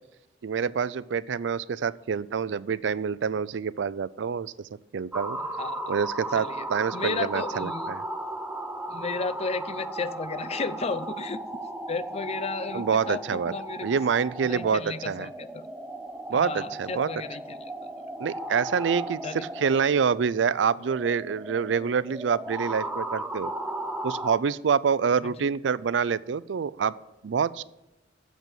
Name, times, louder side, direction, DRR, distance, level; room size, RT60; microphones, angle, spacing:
voice 1, 0.4-4.5 4.9-5.4 5.9-8.0 12.7-13.5 13.8-15.3 16.3-17.1 18.2-23.5 24.0-26.9 27.2-27.6, right 6 dB, 85° right, 18 dB, 0.4 m, -26 dB
sound 1, 5.1-24.4, right 1 dB, 10° right, 0.6 m, -36 dB
voice 2, 5.4-6.0 6.3-6.7 6.9-7.9 8.9-11.4 11.9-14.0 14.4-15.6 16.3-18.1 19.2-19.5 25.2-25.5, left 4 dB, 35° left, 15 dB, 0.5 m, -34 dB
8.2 x 7.6 x 8.8 m, 0.94 s
head